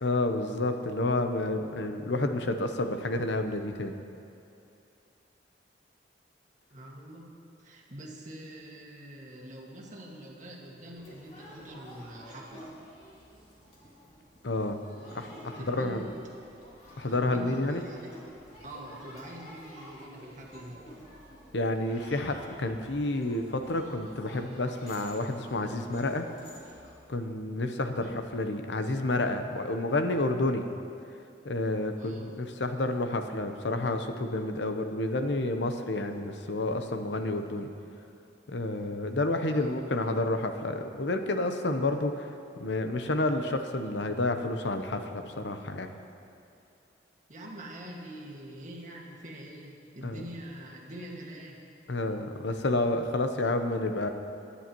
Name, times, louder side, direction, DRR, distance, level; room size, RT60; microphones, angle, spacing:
voice 1, 0.0-3.9 14.4-14.8 15.1-16.0 17.0-17.8 21.5-26.2 27.1-30.6 31.4-37.7 38.5-42.3 42.6-45.9 50.0-50.2 51.9-54.1, left 2 dB, 85° left, 7 dB, 0.8 m, -30 dB
voice 2, 6.7-7.3 7.6-12.6 15.0-15.2 15.6-16.1 17.1-18.1 18.6-20.8 28.0-28.2 32.0-32.3 39.5-39.7 47.3-51.6, right 1 dB, 45° right, -2 dB, 1.9 m, -44 dB
sound 1, 11.0-26.9, equal, 35° left, 2.7 m, -50 dB
22.0 x 10.0 x 3.1 m, 2.6 s
head